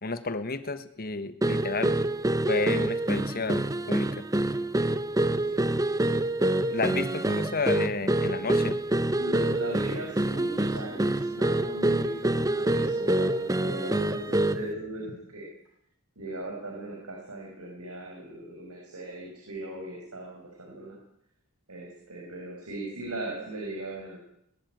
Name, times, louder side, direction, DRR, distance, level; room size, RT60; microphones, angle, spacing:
voice 1, 0.0-2.0 2.5-3.6 3.9-4.1 6.7-8.8, left 3 dB, 40° left, 11 dB, 1.4 m, -31 dB
sound 1, 1.4-14.7, right 1 dB, 15° right, 0.7 m, -26 dB
voice 2, 6.7-7.4 9.1-15.5 16.2-21.0 21.7-24.2, right 1 dB, 85° right, -1 dB, 5.9 m, -38 dB
22.0 x 13.0 x 9.3 m, 0.74 s
head